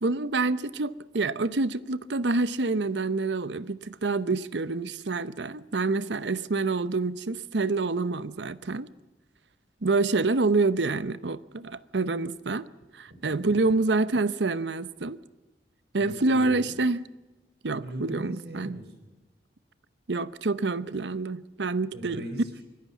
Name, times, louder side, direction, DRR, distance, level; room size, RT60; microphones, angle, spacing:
voice 1, 0.0-8.9 9.8-12.7 12.9-15.2 15.9-17.0 17.6-18.8 20.1-22.2, right 3 dB, 80° right, 0.8 m, -27 dB
voice 2, 13.1-13.5 16.0-16.7 17.8-19.1 21.9-22.6, equal, 65° right, 4.8 m, -40 dB
24.0 x 16.5 x 7.3 m
head